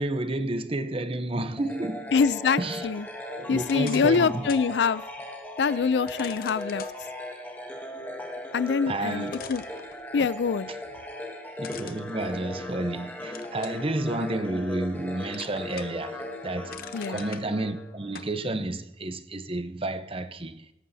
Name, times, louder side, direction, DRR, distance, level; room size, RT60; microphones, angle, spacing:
voice 1, 0.0-2.1 2.6-2.8 3.4-4.5 8.9-9.3 11.6-16.8 17.1-20.7, right 2 dB, 30° right, 0.8 m, -31 dB
sound 1, 1.6-18.3, left 1 dB, 10° left, 1.6 m, -38 dB
voice 2, 2.1-3.1 3.5-5.0 5.6-6.8 8.5-9.6 10.1-10.7 16.9-17.2, left 5 dB, 70° left, 0.4 m, -25 dB
sound 2, 3.6-4.7 5.1-5.2 6.1-7.0 8.7-8.8 9.3-10.4 11.6-12.9 13.3-13.9 14.4-15.0 15.3-16.1 16.4-17.4 18.1-18.3, left 7 dB, 55° left, 0.8 m, -43 dB
17.0 x 14.5 x 2.8 m
head